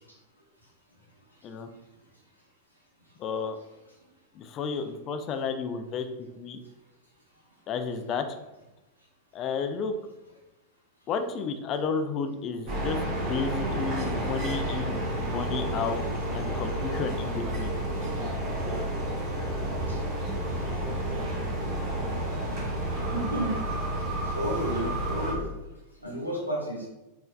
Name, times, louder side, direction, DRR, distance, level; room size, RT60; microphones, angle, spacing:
voice 1, 3.2-3.6 4.4-6.1 6.4-6.6 7.7-8.2 9.3-9.9 11.1-16.0 16.3-17.7, left 5 dB, 35° left, 7 dB, 0.4 m, -32 dB
sound 1, 12.7-25.3, right 1 dB, 40° right, 1.3 m, -30 dB
voice 2, 23.1-23.5 24.2-25.4 26.0-26.9, right 1 dB, 90° right, -3 dB, 1.1 m, -31 dB
4.3 x 3.2 x 2.4 m, 1.0 s
figure-of-eight pair, 90°, 0 cm